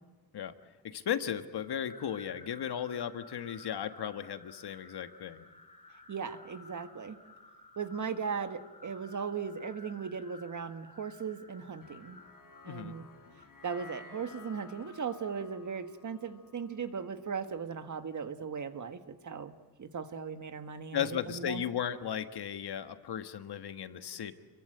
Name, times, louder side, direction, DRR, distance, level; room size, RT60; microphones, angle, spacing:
voice 1, 0.8-5.4 12.7-13.0 20.9-24.3, left 9 dB, 70° left, 9 dB, 1.6 m, -36 dB
sound 1, 1.6-14.9, left 3 dB, 15° left, 4.4 m, -55 dB
voice 2, 6.1-7.2 7.8-12.2 12.6-13.1 13.6-19.5 19.8-21.6, right 6 dB, 45° right, 9 dB, 1.6 m, -38 dB
sound 2, 11.8-18.2, left 4 dB, 50° left, 6.1 m, -55 dB
29.5 x 22.5 x 7.9 m, 1.3 s
wide cardioid pair, 155°, 41 cm